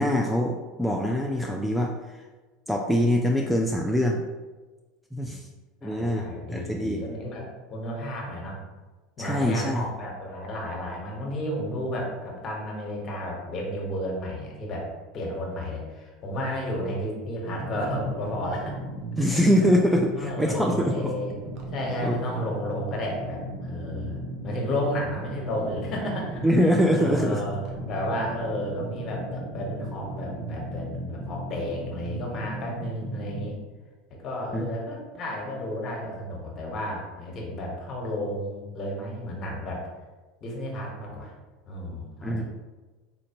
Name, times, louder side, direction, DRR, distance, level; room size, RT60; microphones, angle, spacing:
voice 1, 0.0-1.9 2.7-4.2 5.1-5.5 5.8-7.1 9.2-9.9 19.2-21.1 22.0-22.3 26.4-27.4 34.5-34.8 42.2-42.4, equal, ahead, 0 dB, 0.3 m, -24 dB
voice 2, 5.8-8.6 9.2-14.9 15.1-18.8 20.2-21.3 21.7-27.6 27.9-33.5 34.2-39.8 40.4-41.3 41.7-42.4, left 1 dB, 40° left, -1 dB, 1.2 m, -32 dB
sound 1, 17.4-33.6, right 1 dB, 50° right, 0.7 m, -36 dB
4.2 x 2.5 x 2.9 m, 1.3 s
hypercardioid pair, 80°, 0 cm